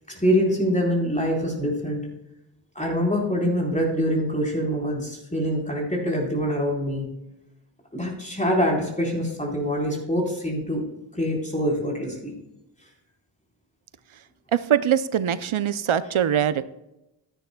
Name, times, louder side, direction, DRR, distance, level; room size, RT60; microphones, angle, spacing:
voice 1, 0.1-2.0 2.7-7.1 7.9-10.8 11.1-12.3, equal, 15° left, -2 dB, 4.1 m, -25 dB
voice 2, 14.5-16.6, right 9 dB, 85° right, 14 dB, 0.6 m, -22 dB
14.0 x 10.0 x 2.2 m, 0.90 s
wide cardioid pair, 55°, 48 cm